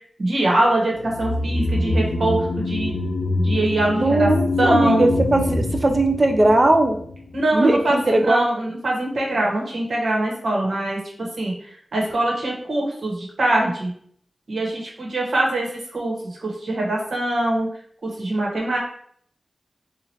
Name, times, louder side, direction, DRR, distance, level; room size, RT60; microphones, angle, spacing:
voice 1, 0.2-2.9 3.4-4.3 4.6-5.1 7.3-11.0 11.4-13.9 14.5-17.7 18.0-18.8, right 1 dB, 75° right, -2 dB, 1.2 m, -23 dB
sound 1, 1.0-7.4 7.7-7.8, left 2 dB, 80° left, 0.5 m, -24 dB
voice 2, 3.9-7.0 7.5-8.5, right 2 dB, 40° right, 4 dB, 0.5 m, -18 dB
3.0 x 2.5 x 4.2 m, 0.62 s
cardioid pair, 60°, 0 cm